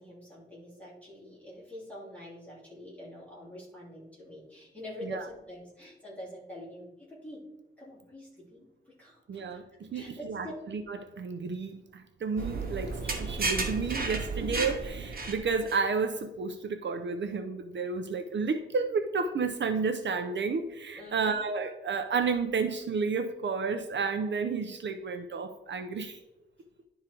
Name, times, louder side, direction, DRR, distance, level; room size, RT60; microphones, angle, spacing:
voice 1, 0.0-7.4 7.8-10.5 21.0-21.4, left 1 dB, 5° left, -7 dB, 3.1 m, -46 dB
voice 2, 9.3-9.6 9.9-26.2, right 5 dB, 60° right, 7 dB, 0.6 m, -31 dB
sound 1, 12.4-15.8, right 3 dB, 45° right, 1.2 m, -33 dB
11.0 x 3.7 x 4.5 m, 0.98 s
wide cardioid pair, 170°, 21 cm